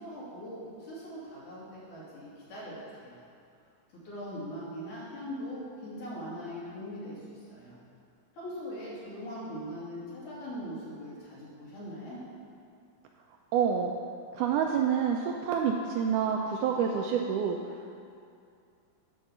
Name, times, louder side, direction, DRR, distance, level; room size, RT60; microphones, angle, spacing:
voice 1, 0.0-3.2 3.9-7.7 8.3-12.2, equal, 60° left, -9 dB, 4.0 m, -41 dB
voice 2, 13.5-13.9 14.3-18.0, right 7 dB, 80° right, 2 dB, 1.8 m, -28 dB
11.0 x 4.6 x 6.8 m, 2.5 s
omnidirectional pair, 4.0 m